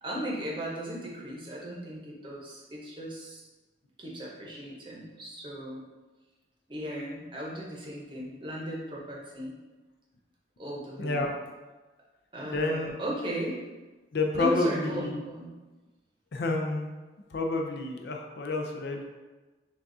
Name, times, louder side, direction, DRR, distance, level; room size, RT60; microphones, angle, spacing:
voice 1, 0.0-3.5 4.0-5.8 6.7-9.6 10.6-11.3 12.3-13.6 14.3-15.6, right 1 dB, 25° right, -3 dB, 0.8 m, -36 dB
voice 2, 11.0-11.3 12.4-12.9 14.1-15.2 16.3-16.9 17.3-19.0, left 2 dB, 65° left, 2 dB, 0.5 m, -29 dB
6.1 x 2.4 x 2.7 m, 1.2 s
head